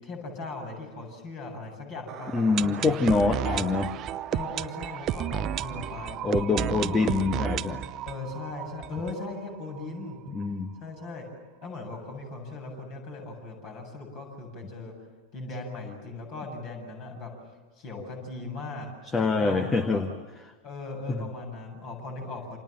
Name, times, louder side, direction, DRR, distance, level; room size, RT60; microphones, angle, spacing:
voice 1, 0.0-3.0 3.4-3.6 4.3-7.1 8.0-10.2 10.8-11.3 11.6-14.9 15.3-17.3 17.8-18.9 19.2-20.0 20.6-22.6, left 3 dB, 40° left, 2 dB, 7.8 m, -38 dB
sound 1, 2.1-9.8 10.1-10.2 10.4-10.5 11.0-11.1, right 10 dB, 30° right, 0.8 m, -32 dB
voice 2, 2.3-3.9 6.2-7.8 10.3-10.7 19.1-20.1 21.1-21.2, left 3 dB, 15° left, 9 dB, 1.5 m, -25 dB
29.0 x 27.0 x 7.5 m, 1.3 s
figure-of-eight pair, 90°, 0 cm